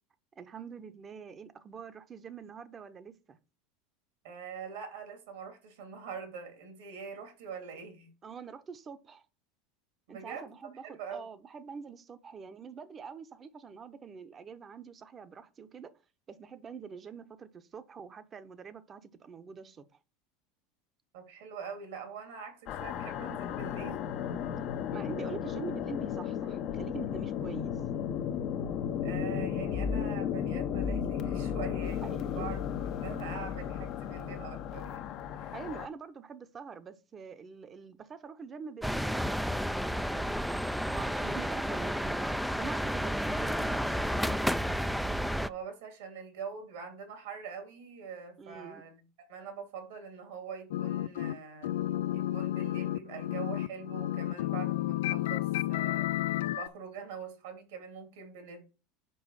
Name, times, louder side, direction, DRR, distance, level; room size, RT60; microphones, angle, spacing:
voice 1, 0.4-3.4 8.2-9.3 10.1-15.9 16.3-19.9 24.9-27.8 32.0-32.5 35.5-40.5 40.9-44.6 48.4-48.8, right 5 dB, 30° right, 0.9 m, -45 dB
voice 2, 4.2-8.1 10.1-10.6 10.8-11.3 21.1-24.0 25.0-25.1 29.0-35.6 45.5-49.0 49.3-51.7 52.1-56.3 56.5-58.7, right 6 dB, 80° right, 2.7 m, -44 dB
sound 1, 22.7-35.9, left 8 dB, 50° left, 0.8 m, -34 dB
sound 2, 38.8-45.5, equal, ahead, 0.4 m, -31 dB
sound 3, 50.7-51.3 51.6-56.7, left 14 dB, 80° left, 0.3 m, -31 dB
5.5 x 4.7 x 6.4 m
hypercardioid pair, 100°, 0 cm